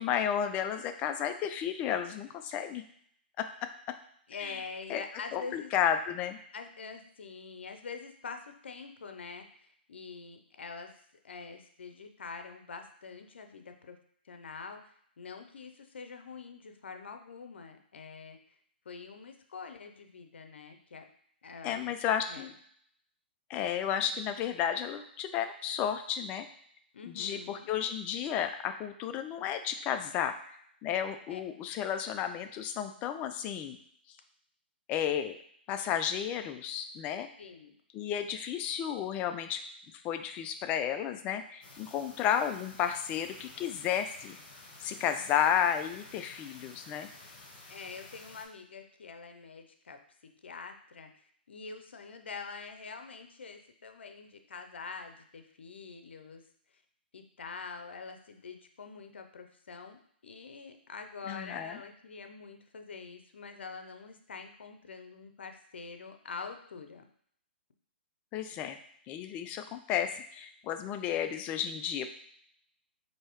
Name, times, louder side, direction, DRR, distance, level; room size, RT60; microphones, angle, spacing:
voice 1, 0.0-2.8 3.4-3.5 4.4-4.6 4.9-5.0 5.3-6.4 21.6-22.5 23.5-26.5 27.0-30.5 30.8-33.8 34.9-35.4 35.7-37.3 37.9-39.6 40.0-44.4 44.8-47.1 61.3-61.8 68.3-68.8 69.1-72.1, left 9 dB, 25° left, 8 dB, 0.3 m, -32 dB
voice 2, 4.3-5.7 6.5-10.9 11.2-14.0 14.2-14.8 15.2-18.4 18.9-21.0 21.4-21.9 22.3-22.5 26.9-27.7 31.3-31.4 37.4-37.7 47.7-50.0 50.4-56.4 57.1-67.1, left 5 dB, 80° left, 6 dB, 0.6 m, -45 dB
sound 1, 41.6-48.4, left 2 dB, 50° left, 1.1 m, -52 dB
4.5 x 2.8 x 3.0 m, 0.65 s
hypercardioid pair, 140°, 6 cm